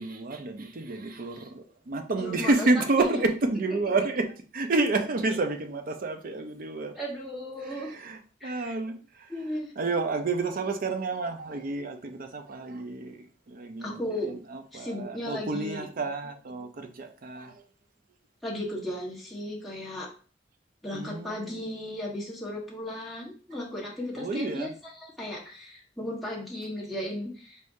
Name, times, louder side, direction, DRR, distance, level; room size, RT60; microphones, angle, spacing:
voice 1, 0.0-6.9 7.6-9.3 9.8-14.0 14.3-17.6 20.9-21.6 24.2-24.7, right 3 dB, 50° right, 0.6 m, -30 dB
voice 2, 2.2-3.1 7.0-7.9 8.4-8.7 9.3-9.7 13.8-14.3 14.7-15.9 18.4-20.1 20.8-27.6, left 1 dB, ahead, 1.2 m, -35 dB
4.3 x 3.6 x 2.6 m
head